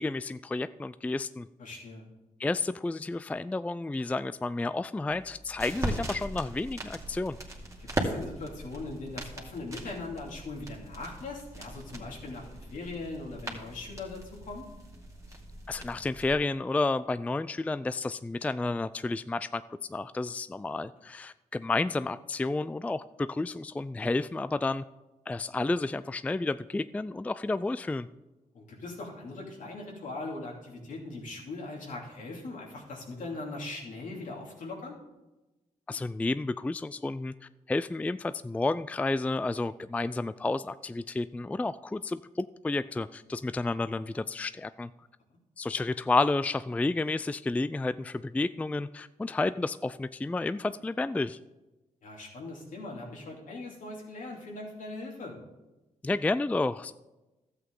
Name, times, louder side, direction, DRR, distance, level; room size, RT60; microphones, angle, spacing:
voice 1, 0.0-1.5 2.4-7.4 15.7-19.6 19.9-24.8 25.3-28.1 35.9-44.9 45.6-51.4 56.0-56.9, left 3 dB, 10° left, 15 dB, 0.3 m, -31 dB
voice 2, 1.6-2.1 7.9-14.7 28.5-35.0 52.0-55.4, left 2 dB, 70° left, -1 dB, 2.7 m, -40 dB
sound 1, 5.1-16.3, right 1 dB, 20° right, 2.3 m, -39 dB
12.5 x 8.2 x 3.8 m, 1.0 s
cardioid pair, 60°, 14 cm